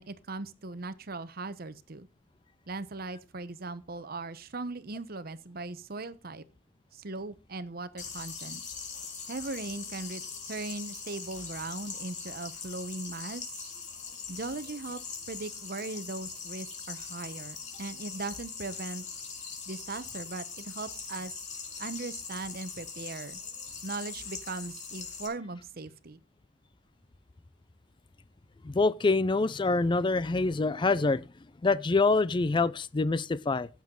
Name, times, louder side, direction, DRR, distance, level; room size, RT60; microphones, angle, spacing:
voice 1, 0.0-2.1 2.7-6.4 6.9-8.6 9.3-13.4 14.3-19.0 19.7-21.3 21.8-23.4 23.8-26.2, right 3 dB, 55° right, 1.0 m, -39 dB
sound 1, 8.0-25.3, left 5 dB, 40° left, 3.9 m, -41 dB
voice 2, 28.6-31.2 31.6-33.7, left 3 dB, 25° left, 0.4 m, -25 dB
15.5 x 7.3 x 3.8 m
head